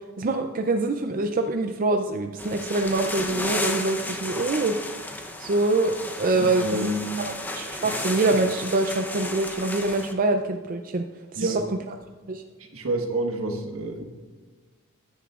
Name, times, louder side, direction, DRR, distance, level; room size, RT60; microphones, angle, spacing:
voice 1, 0.2-4.7 5.4-6.9 7.2-11.1 11.3-11.6 12.3-12.4, right 2 dB, 40° right, 5 dB, 0.4 m, -25 dB
sound 1, 2.4-10.1, left 1 dB, 10° left, 0.7 m, -33 dB
voice 2, 6.4-7.1 7.9-8.0 11.4-11.7 12.6-14.0, right 1 dB, 75° right, 3 dB, 1.5 m, -28 dB
15.0 x 10.0 x 2.4 m, 1.4 s
head